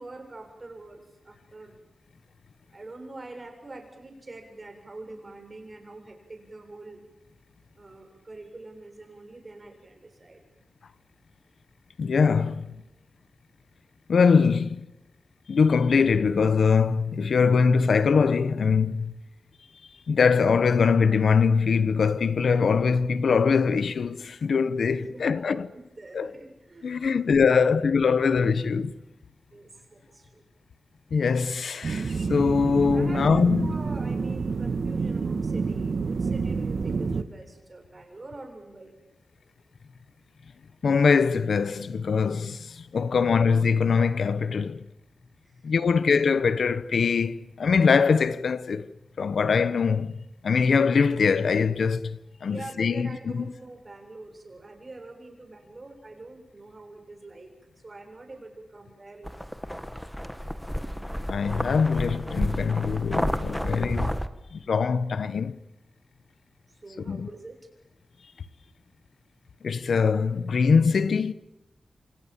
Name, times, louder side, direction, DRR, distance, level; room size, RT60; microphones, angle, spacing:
voice 1, 0.0-1.8 2.7-7.0 7.7-10.4 24.9-25.7 26.0-27.1 29.5-30.5 32.9-38.9 43.0-43.1 45.4-45.7 52.5-57.5 57.8-59.3 64.4-64.6 66.7-67.7, right 2 dB, 35° right, 7.6 m, -44 dB
voice 2, 12.0-12.7 14.1-14.8 15.5-19.2 20.1-25.7 26.1-26.3 26.8-28.9 31.1-33.7 40.8-44.9 45.6-48.9 49.2-50.2 50.4-53.1 53.3-53.4 61.3-64.2 64.5-65.6 67.1-67.3 69.6-71.3, left 5 dB, 80° left, 1.1 m, -22 dB
sound 1, 31.8-37.2, right 4 dB, 65° right, 1.7 m, -28 dB
sound 2, 59.2-64.3, equal, 5° left, 1.6 m, -31 dB
28.5 x 27.5 x 7.5 m
wide cardioid pair, 95°, 0 cm